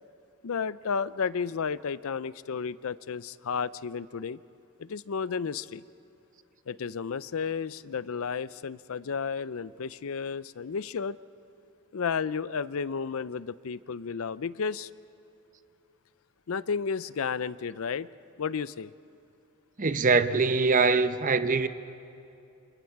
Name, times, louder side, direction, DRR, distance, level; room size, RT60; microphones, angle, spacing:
voice 1, 0.4-4.4 4.8-5.8 6.7-11.2 11.9-14.9 16.5-18.1 18.4-18.9, left 6 dB, 70° left, 0.5 m, -32 dB
voice 2, 19.8-21.7, right 4 dB, 35° right, 0.8 m, -23 dB
28.5 x 28.0 x 4.7 m
head